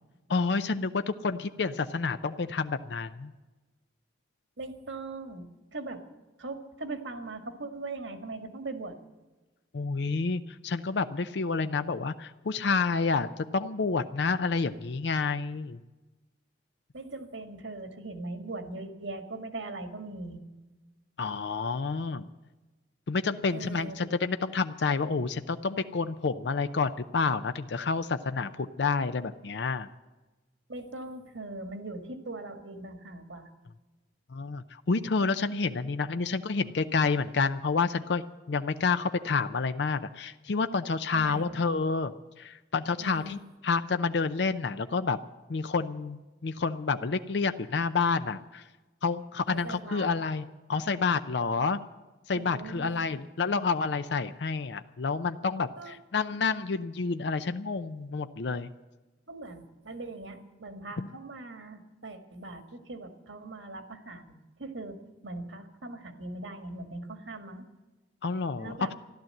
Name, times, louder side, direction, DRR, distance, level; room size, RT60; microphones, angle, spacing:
voice 1, 0.3-3.3 9.7-13.3 13.5-15.8 21.2-22.3 23.1-29.9 34.3-42.1 42.4-45.2 45.5-48.6 49.0-50.4 50.7-51.8 52.3-58.7 61.0-61.1 68.2-68.9, left 4 dB, 65° left, 11 dB, 0.5 m, -29 dB
voice 2, 4.6-6.0 6.4-9.0 16.9-20.4 23.5-24.0 30.7-33.5 35.8-35.9 41.1-41.6 43.0-43.4 49.5-50.1 52.3-53.0 55.8-56.0 59.3-64.3 64.6-65.0 65.2-67.7 68.6-68.9, right 2 dB, 85° right, 7 dB, 1.9 m, -40 dB
14.0 x 12.0 x 7.7 m, 1.2 s
head